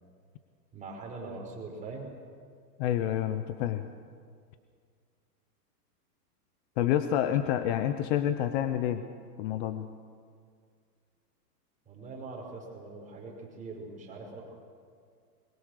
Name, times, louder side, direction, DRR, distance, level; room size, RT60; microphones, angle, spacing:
voice 1, 0.7-2.1 7.5-7.6 11.9-14.4, right 3 dB, 15° right, -1 dB, 5.4 m, -42 dB
voice 2, 2.8-3.9 6.8-9.0 9.4-9.9, left 11 dB, 40° left, 10 dB, 1.0 m, -28 dB
23.5 x 22.0 x 6.7 m, 2.1 s
hypercardioid pair, 145°, 49 cm